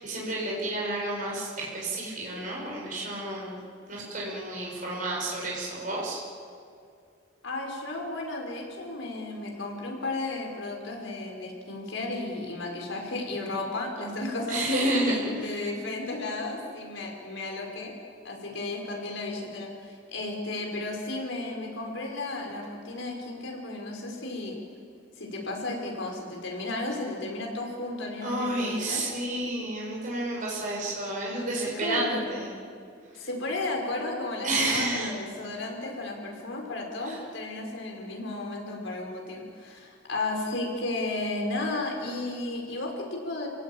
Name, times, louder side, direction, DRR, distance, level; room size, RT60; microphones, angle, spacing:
voice 1, 0.0-3.6 3.9-6.2 14.5-15.3 28.2-32.5 34.4-35.1 37.0-37.2, right 1 dB, 40° right, -3 dB, 6.1 m, -30 dB
voice 2, 7.4-17.9 18.2-24.5 25.2-29.1 31.8-32.2 33.1-43.5, left 2 dB, 75° left, 0 dB, 5.3 m, -34 dB
29.0 x 18.0 x 8.8 m, 2.3 s
head